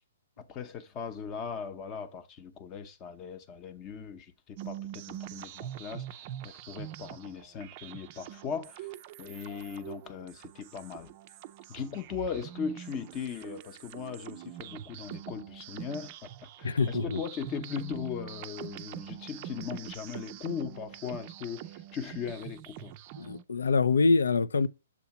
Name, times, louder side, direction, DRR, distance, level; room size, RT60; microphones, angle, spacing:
voice 1, 0.4-8.9 9.2-11.1 11.7-23.0, left 7 dB, 30° left, 0.7 m, -39 dB
sound 1, 4.6-23.4, right 12 dB, 40° right, 0.4 m, -44 dB
voice 2, 16.6-17.2 23.2-24.7, left 4 dB, 80° left, 0.4 m, -25 dB
7.1 x 2.8 x 5.7 m
hypercardioid pair, 135°, 0 cm